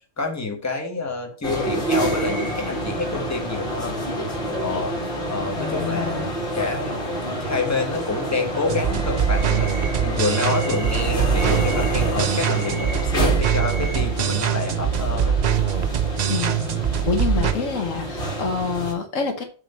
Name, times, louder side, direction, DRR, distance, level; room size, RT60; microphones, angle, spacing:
voice 1, 0.2-4.0 4.6-5.0 5.3-7.0 7.4-15.4 17.3-17.6, left 4 dB, 15° left, 1.2 m, -28 dB
sound 1, 1.4-18.9, right 1 dB, 45° left, 2.2 m, -28 dB
voice 2, 5.4-6.3 16.3-16.7 17.0-19.4, left 5 dB, 80° left, 1.6 m, -27 dB
sound 2, 8.7-17.5, right 8 dB, 55° right, 0.4 m, -23 dB
7.2 x 3.7 x 5.5 m
omnidirectional pair, 1.3 m